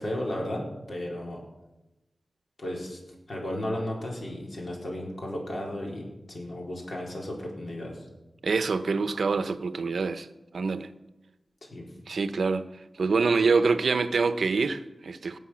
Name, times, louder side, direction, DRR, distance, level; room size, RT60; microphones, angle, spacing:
voice 1, 0.0-1.4 2.6-3.0 3.3-8.1 11.7-11.9, left 1 dB, 60° left, 4.2 m, -34 dB
voice 2, 8.4-10.3 10.5-10.9 12.1-12.7 13.0-15.4, right 4 dB, 80° right, 0.8 m, -25 dB
17.5 x 7.6 x 6.2 m
wide cardioid pair, 90°, 0 cm